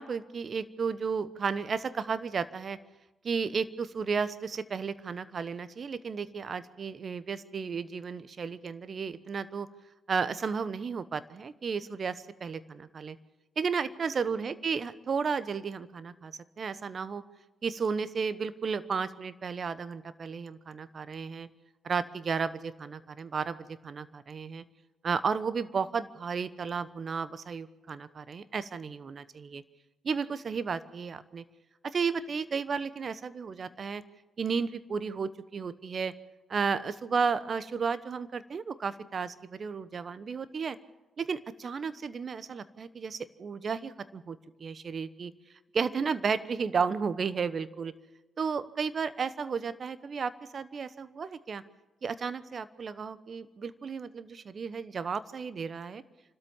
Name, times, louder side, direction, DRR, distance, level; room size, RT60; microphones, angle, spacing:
voice 1, 0.0-2.8 3.2-9.7 10.1-13.2 13.6-17.2 17.6-21.5 21.8-24.6 25.0-29.6 30.0-31.4 31.8-34.0 34.4-36.1 36.5-40.8 41.2-45.3 45.7-47.9 48.4-51.6 52.0-56.0, right 5 dB, 50° right, 14 dB, 1.1 m, -33 dB
28.5 x 13.0 x 7.3 m, 1.1 s
hypercardioid pair, 45°, 0 cm